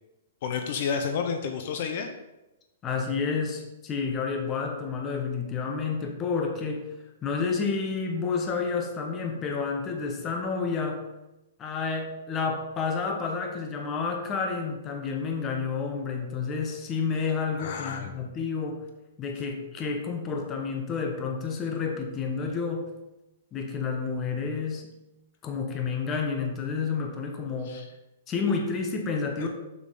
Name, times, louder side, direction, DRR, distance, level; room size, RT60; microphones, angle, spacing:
voice 1, 0.4-2.1 17.6-18.2 27.7-27.8 29.4-29.5, left 6 dB, 45° left, 6 dB, 0.7 m, -30 dB
voice 2, 2.8-6.9 7.2-11.1 11.6-18.9 19.2-22.9 23.5-24.9 25.4-27.8 28.3-29.5, left 5 dB, 15° left, 3 dB, 0.8 m, -30 dB
7.2 x 6.1 x 3.8 m, 0.98 s
hypercardioid pair, 170°, 0 cm